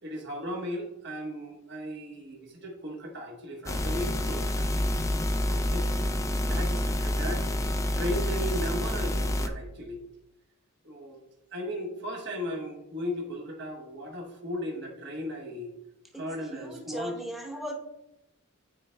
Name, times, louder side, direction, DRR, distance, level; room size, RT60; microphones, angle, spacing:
voice 1, 0.0-4.7 5.5-5.9 6.5-7.5 7.9-10.0 10.8-11.2 11.5-15.7 16.2-17.1, equal, 55° right, 1 dB, 1.2 m, -36 dB
sound 1, 3.7-9.5, left 1 dB, 15° left, 0.4 m, -28 dB
voice 2, 16.1-17.7, equal, ahead, -1 dB, 0.9 m, -38 dB
12.0 x 4.4 x 2.2 m, 0.88 s
head